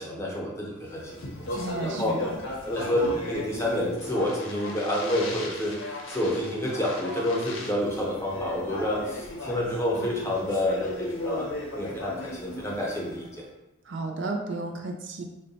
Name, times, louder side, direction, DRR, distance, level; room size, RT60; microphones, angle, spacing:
voice 1, 0.0-2.2 2.6-13.4, left 1 dB, 15° left, -4 dB, 0.7 m, -29 dB
Speech, 0.9-13.3, left 1 dB, 65° left, 0.7 m, -36 dB
voice 2, 1.5-2.4 13.9-15.2, right 2 dB, 60° right, 2 dB, 0.4 m, -33 dB
3.7 x 2.2 x 3.9 m, 0.97 s
head